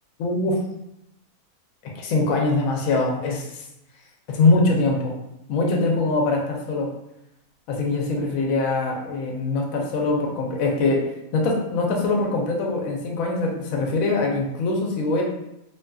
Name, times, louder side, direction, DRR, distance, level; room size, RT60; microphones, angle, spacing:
voice 1, 0.2-0.5 2.0-3.6 4.3-5.1 5.5-6.9 7.7-11.0 11.3-15.2, left 3 dB, 70° left, 0 dB, 0.9 m, -23 dB
2.6 x 2.5 x 2.2 m, 0.84 s
omnidirectional pair, 1.6 m